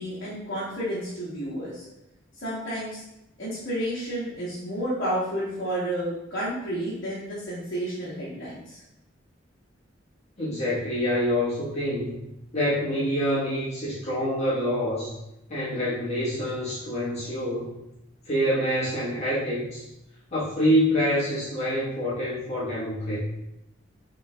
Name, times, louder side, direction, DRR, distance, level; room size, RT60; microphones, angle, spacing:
voice 1, 0.0-1.8 2.4-3.0 3.4-8.8, right 1 dB, 60° left, -9 dB, 1.1 m, -31 dB
voice 2, 10.4-12.1 12.5-15.1 15.5-17.7 18.3-19.8 20.3-23.2, equal, 35° left, -10 dB, 1.3 m, -26 dB
5.3 x 3.1 x 2.3 m, 0.87 s
head